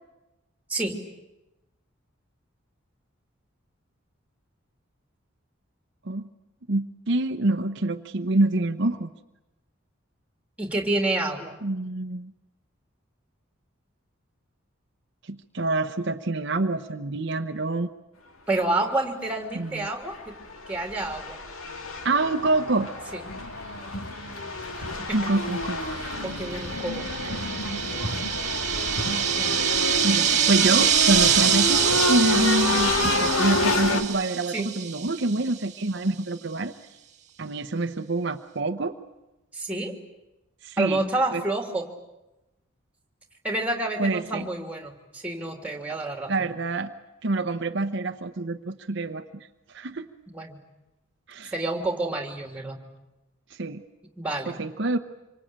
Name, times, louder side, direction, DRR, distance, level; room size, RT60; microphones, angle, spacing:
voice 1, 6.7-9.1 11.6-12.3 15.2-17.9 19.5-19.9 22.0-22.9 25.1-26.0 27.2-27.5 29.5-29.8 30.0-36.7 37.4-38.9 40.6-41.0 41.3-41.4 44.0-44.5 46.3-46.9 47.2-50.1 51.3-51.5 53.5-53.8 54.5-55.0, right 2 dB, 60° right, 7 dB, 0.9 m, -26 dB
voice 2, 10.6-11.6 18.5-20.3 20.7-21.4 23.1-23.2 25.0-25.2 26.0-27.1 29.4-29.5 34.5-34.7 39.5-39.9 40.8-41.8 43.4-46.5 50.3-50.6 51.5-52.8 54.2-54.6, right 2 dB, 5° right, 3 dB, 3.1 m, -29 dB
sound 1, 19.3-19.4 19.9-34.0, left 2 dB, 85° left, 2.3 m, -28 dB
sound 2, 25.6-35.4, right 9 dB, 35° right, 1.6 m, -25 dB
26.5 x 25.0 x 8.9 m, 0.98 s
head